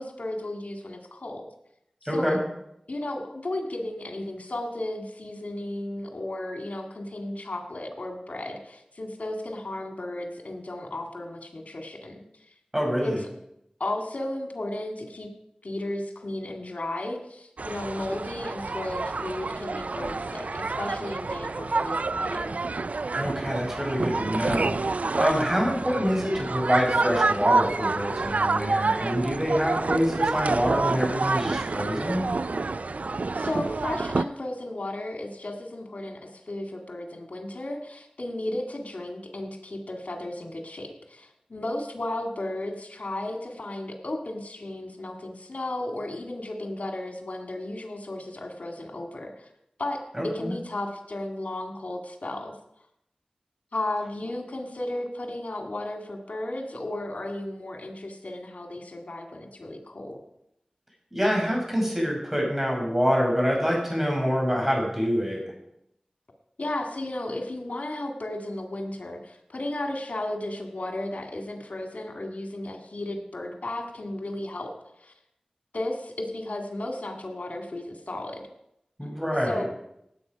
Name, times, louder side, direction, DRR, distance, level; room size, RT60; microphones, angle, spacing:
voice 1, 0.0-1.5 2.1-2.4 2.9-12.2 13.0-13.1 13.8-15.3 15.6-22.6 33.3-49.5 49.8-52.5 53.7-60.2 66.6-74.7 75.0-75.1 75.7-78.4 79.5-79.6, left 1 dB, 85° left, 4 dB, 2.1 m, -34 dB
voice 2, 2.1-2.4 12.7-13.2 23.1-24.8 25.2-32.2 50.2-50.5 61.1-65.4 79.0-79.6, equal, 15° right, -1 dB, 5.9 m, -26 dB
sound 1, 17.6-34.2, right 3 dB, 80° right, 0.4 m, -28 dB
17.5 x 8.4 x 5.3 m, 0.80 s
wide cardioid pair, 45°, 2 cm